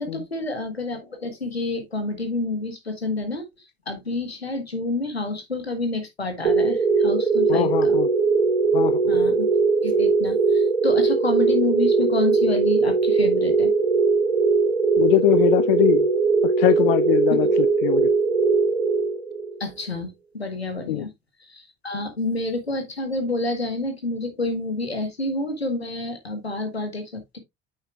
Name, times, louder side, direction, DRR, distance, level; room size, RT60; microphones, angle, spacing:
voice 1, 0.0-3.4 3.9-8.0 9.1-9.5 9.8-13.7 17.4-17.5 19.6-21.1 21.5-27.4, left 2 dB, 90° left, 1.3 m, -28 dB
sound 1, 6.4-19.6, right 4 dB, 80° right, 1.0 m, -20 dB
voice 2, 7.5-8.1 8.7-9.2 15.0-16.1 16.4-18.1 20.9-21.1, left 14 dB, 65° left, 0.5 m, -22 dB
9.0 x 6.3 x 2.3 m
figure-of-eight pair, 55°, 31 cm